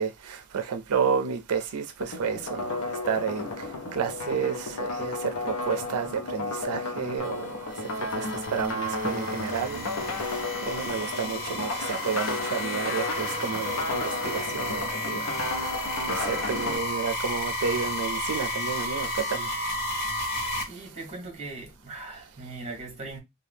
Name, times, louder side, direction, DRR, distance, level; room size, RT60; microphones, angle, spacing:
voice 1, 0.0-3.7 3.9-9.9 10.2-15.3 15.6-15.7 16.1-19.5, right 6 dB, 85° right, 0.4 m, -31 dB
sound 1, 2.0-16.8, left 2 dB, 70° left, 0.6 m, -33 dB
sound 2, 7.2-20.6, left 1 dB, 45° left, 1.3 m, -33 dB
voice 2, 20.6-23.2, right 3 dB, 30° right, 1.1 m, -39 dB
2.7 x 2.2 x 3.4 m
head